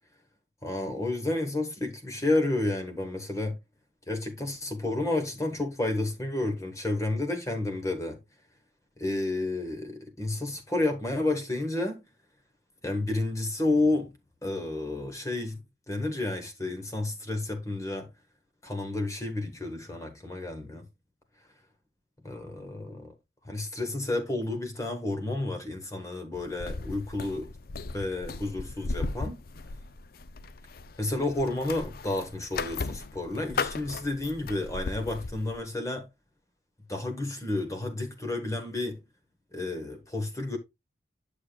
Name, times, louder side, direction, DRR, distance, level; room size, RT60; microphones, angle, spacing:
voice 1, 0.6-3.6 4.1-8.2 9.0-12.0 12.8-14.1 14.4-15.6 15.9-18.1 18.6-20.8 22.2-23.1 23.4-27.5 27.9-29.4 31.0-36.1 36.9-39.0 39.5-40.6, left 2 dB, 20° left, 1.3 m, -31 dB
sound 1, 26.3-35.6, left 4 dB, 55° left, 0.5 m, -37 dB
9.7 x 6.8 x 2.3 m
head